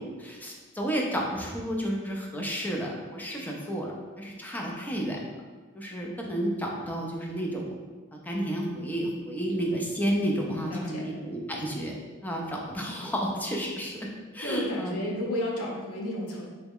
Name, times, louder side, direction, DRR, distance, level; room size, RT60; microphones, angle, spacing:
voice 1, 0.0-5.2 5.7-7.7 8.1-11.9 12.2-14.1 14.3-15.1, equal, 10° left, -1 dB, 0.6 m, -31 dB
voice 2, 10.5-11.1 12.8-12.9 14.4-16.5, left 1 dB, 85° left, -2 dB, 0.9 m, -33 dB
4.0 x 3.4 x 3.7 m, 1.4 s
head